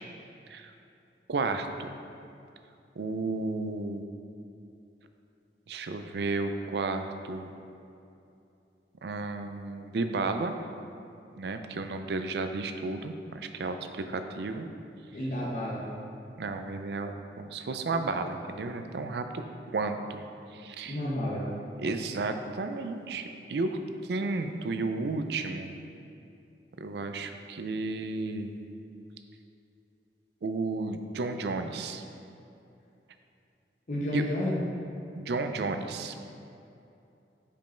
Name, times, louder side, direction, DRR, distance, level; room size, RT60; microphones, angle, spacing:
voice 1, 1.3-1.9 3.0-4.0 5.7-7.5 9.0-10.6 11.4-14.7 16.4-19.4 19.7-20.2 20.5-21.0 21.8-23.8 24.1-25.7 26.8-28.5 30.4-32.0 34.1-34.2 35.2-36.2, right 3 dB, 65° right, 7 dB, 0.4 m, -32 dB
voice 2, 15.1-15.8 20.9-21.4 33.9-34.5, left 1 dB, 45° left, -6 dB, 0.8 m, -31 dB
5.3 x 5.1 x 4.3 m, 2.7 s
head